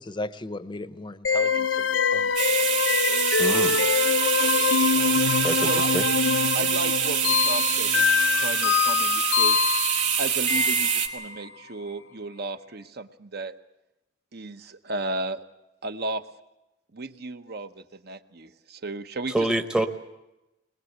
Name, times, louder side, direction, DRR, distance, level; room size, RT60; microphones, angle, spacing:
voice 1, 0.0-2.3, left 2 dB, 25° left, 14 dB, 0.7 m, -36 dB
sound 1, 1.2-11.4, left 6 dB, 80° left, 0.7 m, -24 dB
sound 2, 2.4-11.1, right 8 dB, 90° right, 2.0 m, -25 dB
voice 2, 3.4-3.8 5.4-6.0 19.3-19.9, right 1 dB, 5° right, 6 dB, 0.9 m, -26 dB
voice 3, 6.5-9.6 10.2-13.5 14.3-15.4 15.8-16.2 16.9-19.3, right 2 dB, 55° right, 9 dB, 1.0 m, -34 dB
21.0 x 20.5 x 8.0 m, 0.96 s
head